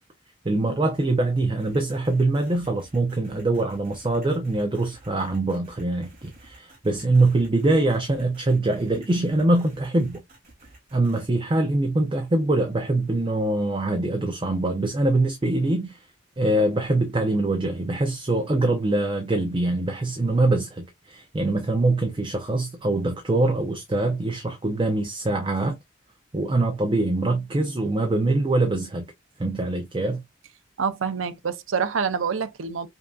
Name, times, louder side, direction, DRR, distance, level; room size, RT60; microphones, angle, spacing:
voice 1, 0.4-10.2 10.9-16.1 16.4-25.8 26.3-29.1 29.4-30.2, right 2 dB, 25° right, 0.5 m, -23 dB
sound 1, 1.6-11.2, right 2 dB, 45° right, 2.5 m, -51 dB
voice 2, 30.8-32.9, right 6 dB, 75° right, 0.6 m, -26 dB
5.2 x 2.6 x 2.3 m
head